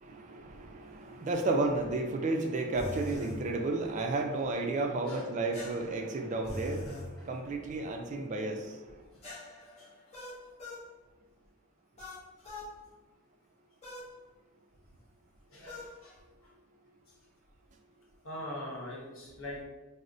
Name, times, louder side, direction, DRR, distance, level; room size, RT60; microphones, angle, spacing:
voice 1, 0.0-8.8, right 2 dB, 35° right, 4 dB, 0.3 m, -32 dB
sound 1, 2.7-3.4 5.5-7.1 9.2-10.9 12.0-12.7 13.8-14.1 15.7-15.9, equal, 30° left, 0.6 m, -42 dB
voice 2, 6.8-7.3 9.1-9.2 9.8-9.9 10.2-10.3 15.5-16.2 18.2-19.6, left 1 dB, 70° left, -3 dB, 0.9 m, -43 dB
4.7 x 2.0 x 2.6 m, 1.2 s
head